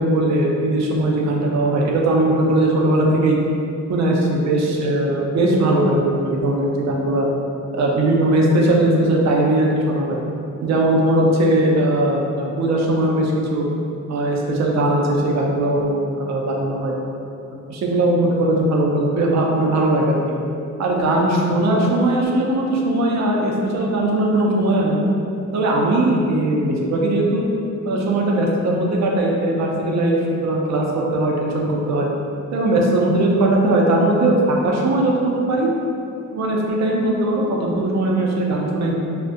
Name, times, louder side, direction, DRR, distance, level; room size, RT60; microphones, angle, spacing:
voice 1, 0.0-3.4 3.9-7.3 7.7-10.2 10.6-13.7 14.1-16.9 17.7-20.4 20.8-25.0 25.5-27.5 27.8-32.1 32.5-35.7 36.3-38.9, right 1 dB, 65° right, -1 dB, 0.4 m, -19 dB
2.4 x 2.1 x 2.5 m, 2.6 s
wide cardioid pair, 155°, 30 cm